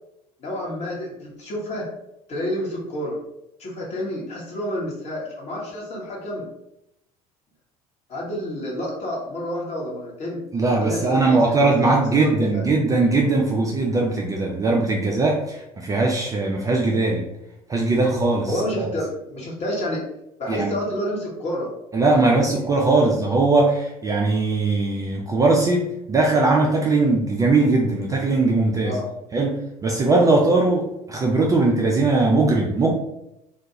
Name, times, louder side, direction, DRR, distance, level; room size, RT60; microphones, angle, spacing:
voice 1, 0.4-1.9 2.3-3.2 3.6-6.4 8.1-10.4 10.8-11.7 12.1-12.6 18.5-20.0 20.4-21.7 22.1-22.7 28.8-29.1, equal, 35° left, -4 dB, 1.0 m, -29 dB
voice 2, 10.5-17.2 17.7-18.9 20.5-20.7 21.9-29.0 29.3-32.9, right 3 dB, 15° right, -2 dB, 0.3 m, -20 dB
2.4 x 2.2 x 2.7 m, 0.85 s
figure-of-eight pair, 60°, 20 cm